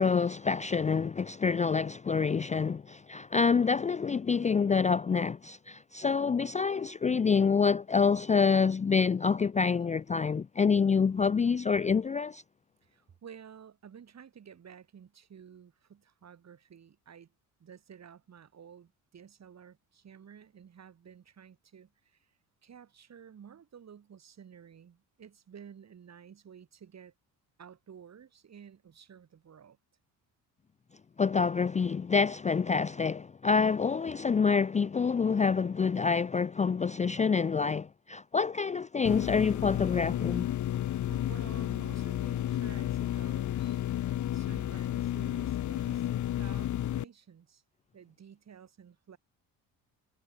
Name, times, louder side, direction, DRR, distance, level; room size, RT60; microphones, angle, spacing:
voice 1, 0.0-12.4 31.2-40.5, left 5 dB, 20° left, 0.5 m, -27 dB
voice 2, 12.8-17.3 17.6-22.3 22.6-27.1 27.6-29.8 41.1-44.0 44.3-47.6 47.9-49.2, right 8 dB, 45° right, 6.2 m, -52 dB
sound 1, 39.0-47.0, left 12 dB, 50° left, 1.0 m, -32 dB
cardioid pair, 95°, 37 cm